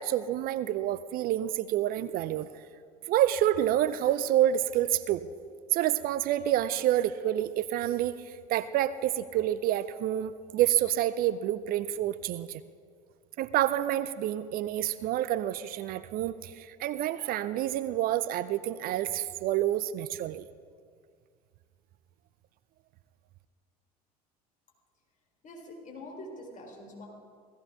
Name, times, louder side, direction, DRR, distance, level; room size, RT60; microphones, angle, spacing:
voice 1, 0.0-2.5 3.1-5.3 5.7-12.6 13.4-20.4, right 12 dB, 45° right, 15 dB, 0.5 m, -28 dB
voice 2, 25.4-27.1, left 1 dB, 40° left, 0 dB, 3.9 m, -44 dB
17.5 x 15.0 x 3.7 m, 2.1 s
hypercardioid pair, 70°, 20 cm